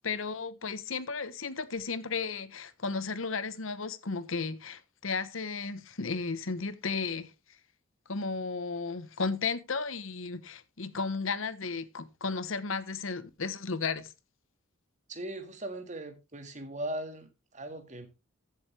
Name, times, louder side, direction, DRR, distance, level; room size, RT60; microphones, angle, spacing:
voice 1, 0.0-7.3 8.1-14.1, left 4 dB, 75° left, 1.1 m, -34 dB
voice 2, 15.1-18.1, right 1 dB, 35° right, 1.8 m, -39 dB
14.5 x 7.9 x 3.3 m
head